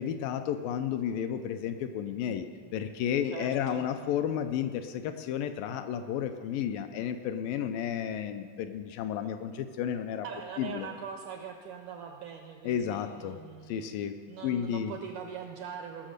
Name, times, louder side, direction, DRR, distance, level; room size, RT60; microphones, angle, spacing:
voice 1, 0.0-10.3 10.6-10.9 12.6-13.4 13.7-14.2 14.4-15.0, left 9 dB, 80° left, 8 dB, 2.1 m, -32 dB
voice 2, 3.3-3.9 10.2-14.0 14.3-16.1, right 7 dB, 85° right, 4 dB, 1.8 m, -42 dB
19.0 x 6.4 x 6.5 m, 2.3 s
omnidirectional pair, 4.3 m